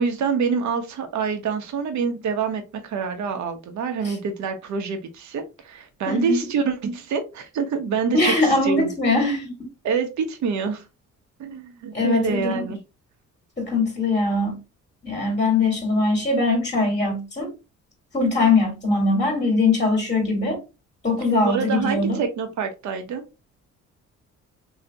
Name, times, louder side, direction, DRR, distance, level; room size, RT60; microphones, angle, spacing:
voice 1, 0.0-8.9 9.8-10.8 11.4-12.8 21.4-23.3, right 5 dB, 70° right, 6 dB, 0.9 m, -26 dB
voice 2, 6.1-6.4 8.1-9.5 11.9-12.5 13.6-14.5 15.0-17.5 18.1-20.6 21.0-22.2, left 3 dB, 25° left, 0 dB, 1.5 m, -21 dB
3.2 x 2.8 x 2.7 m, 0.27 s
cardioid pair, 90°, 30 cm